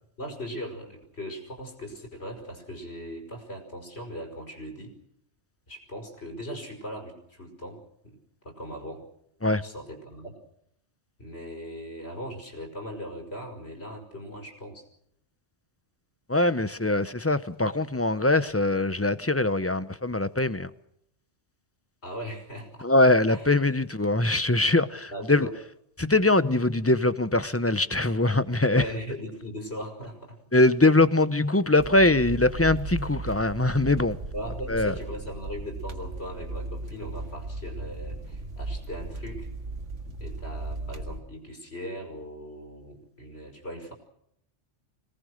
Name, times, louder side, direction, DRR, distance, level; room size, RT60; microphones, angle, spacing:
voice 1, 0.2-4.9 5.7-8.2 8.4-9.0 9.6-10.3 11.2-14.8 22.0-22.9 23.3-23.6 25.1-25.5 28.7-30.4 34.3-39.5 40.2-43.9, equal, 60° left, 5.7 m, -39 dB
voice 2, 16.3-20.7 22.8-25.5 26.0-28.8 30.5-34.2 34.7-34.9, left 2 dB, 15° left, 0.7 m, -22 dB
sound 1, 31.8-41.2, right 2 dB, 85° right, 2.2 m, -36 dB
26.0 x 19.0 x 6.5 m
omnidirectional pair, 1.2 m